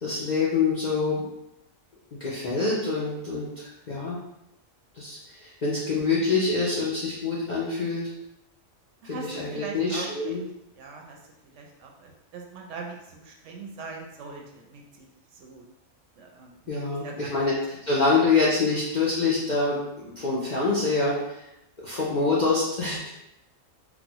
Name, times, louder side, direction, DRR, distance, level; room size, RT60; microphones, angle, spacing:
voice 1, 0.0-1.2 2.1-4.2 4.9-8.1 9.0-10.4 16.7-21.4 21.8-23.1, left 4 dB, 55° left, -7 dB, 0.5 m, -26 dB
voice 2, 9.0-10.4 10.8-15.6 16.2-17.3 17.7-18.1, right 4 dB, 70° right, 0 dB, 0.8 m, -42 dB
3.9 x 2.0 x 2.9 m, 0.85 s
omnidirectional pair, 1.4 m